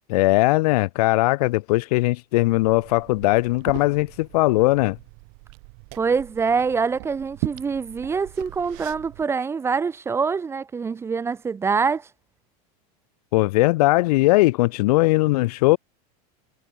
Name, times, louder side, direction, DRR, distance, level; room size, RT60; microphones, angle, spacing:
voice 1, 0.1-5.0 13.3-15.8, left 20 dB, 70° left, 0.7 m, -19 dB
Liquid, 2.5-9.2, right 40 dB or more, 55° right, 8.0 m, -39 dB
voice 2, 5.9-12.1, right 5 dB, 15° right, 0.5 m, -25 dB
supercardioid pair, 150°, 20 cm